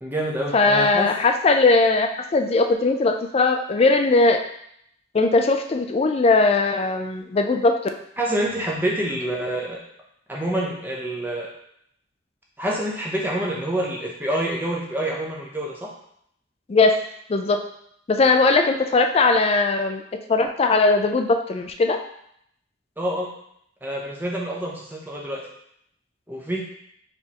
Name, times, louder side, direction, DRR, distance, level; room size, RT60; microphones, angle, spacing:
voice 1, 0.0-1.1 8.2-9.8 10.3-11.5 12.6-15.9 23.0-23.3 23.8-25.4 26.3-26.6, right 1 dB, 10° right, -3 dB, 0.6 m, -27 dB
voice 2, 0.5-4.4 5.1-7.8 16.7-17.0 17.3-17.6 18.1-20.0 20.3-22.0, left 3 dB, 30° left, 5 dB, 0.3 m, -19 dB
4.5 x 3.5 x 2.9 m, 0.72 s
head